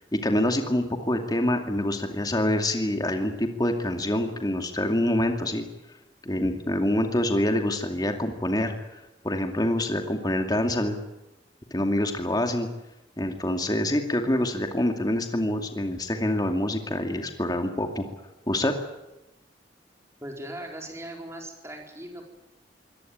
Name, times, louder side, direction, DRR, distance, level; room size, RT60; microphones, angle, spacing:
voice 1, 0.0-5.6 6.2-8.7 9.2-11.0 11.7-12.7 13.2-18.1 18.5-18.7, left 1 dB, 20° left, 5 dB, 2.4 m, -26 dB
voice 2, 20.2-22.2, right 1 dB, 15° right, 1 dB, 4.5 m, -39 dB
24.5 x 17.5 x 8.9 m, 0.98 s
head